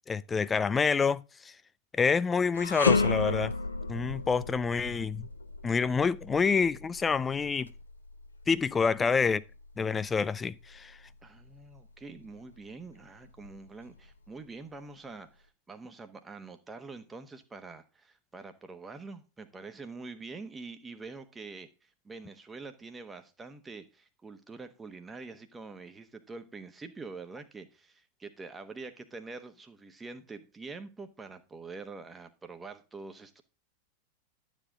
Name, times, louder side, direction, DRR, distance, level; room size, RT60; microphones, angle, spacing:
voice 1, 0.1-1.2 1.9-3.5 3.9-5.3 5.6-7.7 8.5-9.4 9.8-10.9, left 5 dB, 15° left, 0.4 m, -27 dB
sound 1, 2.5-11.8 12.2-12.4 13.2-14.1, left 4 dB, 75° left, 0.8 m, -33 dB
voice 2, 11.2-33.4, right 3 dB, 15° right, 1.2 m, -45 dB
11.5 x 7.4 x 3.8 m
figure-of-eight pair, 90°, 0 cm